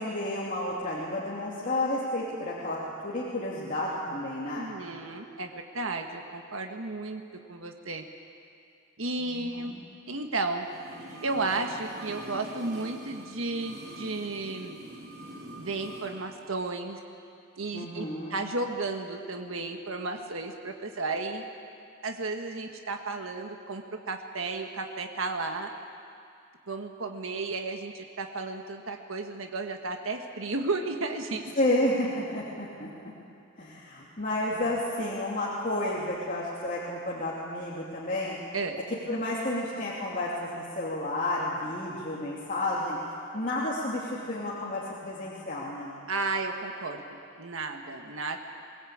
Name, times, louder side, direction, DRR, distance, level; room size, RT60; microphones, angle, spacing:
voice 1, 0.0-4.7 9.2-9.8 17.7-18.4 31.6-32.9 33.6-38.4 39.1-43.0 43.3-46.0, left 1 dB, 40° left, -6 dB, 2.8 m, -31 dB
voice 2, 4.5-7.2 7.5-8.0 9.0-9.7 10.1-10.7 11.2-14.8 15.6-17.0 17.6-18.0 18.3-21.4 22.0-25.7 26.7-31.5 38.5-38.8 46.1-48.4, right 3 dB, 70° right, 4 dB, 1.5 m, -33 dB
sound 1, 10.6-16.1 16.4-16.5, right 1 dB, 55° right, 6.2 m, -44 dB
23.0 x 18.5 x 8.7 m, 2.5 s
head